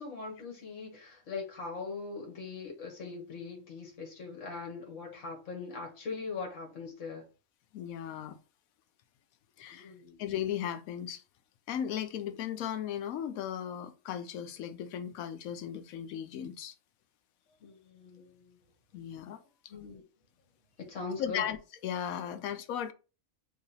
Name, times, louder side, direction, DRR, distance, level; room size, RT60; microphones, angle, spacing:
voice 1, 0.0-7.2 9.7-10.2 17.6-18.6 19.7-20.0 20.8-21.4, left 4 dB, 60° left, 1.5 m, -41 dB
voice 2, 7.7-8.4 9.6-9.9 10.2-11.2 11.7-16.7 18.9-19.4 21.2-21.6 21.8-22.9, left 9 dB, 80° left, 1.0 m, -36 dB
3.1 x 2.9 x 4.0 m
omnidirectional pair, 1.5 m